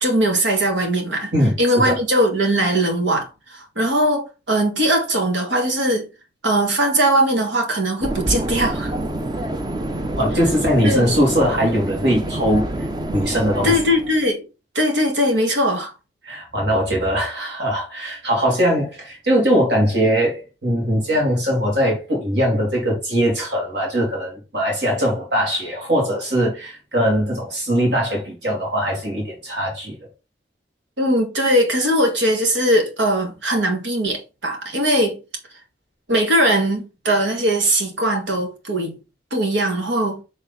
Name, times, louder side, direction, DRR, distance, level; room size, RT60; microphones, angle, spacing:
voice 1, 0.0-1.3 1.6-6.1 6.4-8.9 10.8-11.0 13.6-14.5 14.8-15.9 31.0-35.2 36.1-39.0 39.3-40.2, right 1 dB, 90° right, 1.9 m, -20 dB
sound 1, 8.0-14.3, right 1 dB, 25° right, 0.6 m, -27 dB
voice 2, 10.2-12.7 13.1-13.7 16.2-30.0, equal, 70° right, 2.7 m, -20 dB
6.6 x 3.6 x 4.1 m
head